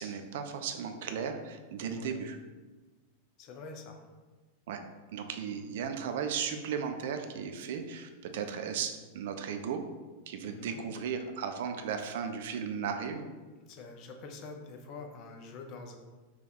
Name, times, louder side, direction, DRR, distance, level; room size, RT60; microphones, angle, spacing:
voice 1, 0.0-2.4 4.7-4.8 5.1-9.8 10.3-13.3, right 7 dB, 55° right, 6 dB, 0.4 m, -36 dB
voice 2, 1.9-2.3 3.4-4.1 10.4-10.8 13.7-16.0, left 3 dB, 40° left, 3 dB, 0.5 m, -46 dB
3.4 x 2.2 x 4.2 m, 1.3 s
figure-of-eight pair, 90°, 0 cm